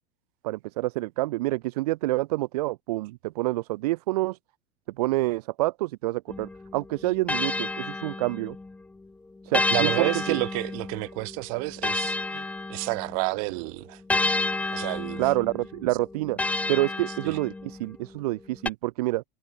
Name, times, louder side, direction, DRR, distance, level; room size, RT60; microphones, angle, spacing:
voice 1, 0.4-4.4 5.0-8.5 9.4-10.4 12.3-12.4 15.2-16.4 16.7-19.2, right 19 dB, 80° right, 1.2 m, -27 dB
sound 1, 6.3-8.8 9.5-13.3 14.1-17.9 18.7-18.8, left 3 dB, 5° left, 0.7 m, -30 dB
voice 2, 9.7-12.4 12.7-14.0 14.7-15.3 17.2-17.4, right 31 dB, 65° right, 3.6 m, -30 dB
supercardioid pair, 140°, 19 cm